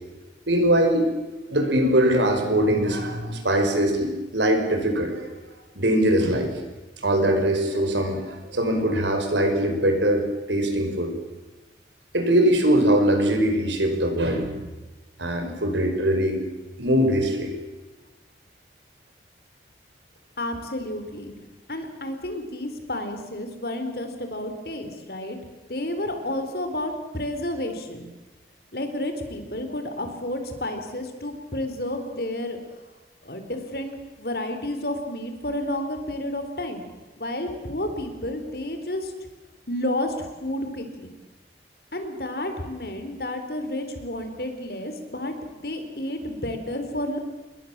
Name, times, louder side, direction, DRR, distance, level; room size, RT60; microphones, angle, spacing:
voice 1, 0.5-1.1 1.5-5.3 5.8-6.5 7.0-11.1 12.1-14.5 15.2-16.4 16.8-17.5, right 1 dB, 90° right, 5 dB, 5.6 m, -22 dB
voice 2, 20.4-21.3 21.7-25.4 25.7-28.0 28.7-32.6 33.2-36.8 37.2-39.1 39.7-41.1 41.9-47.2, left 1 dB, 60° left, 7 dB, 4.0 m, -31 dB
28.5 x 22.0 x 7.5 m, 1.2 s
head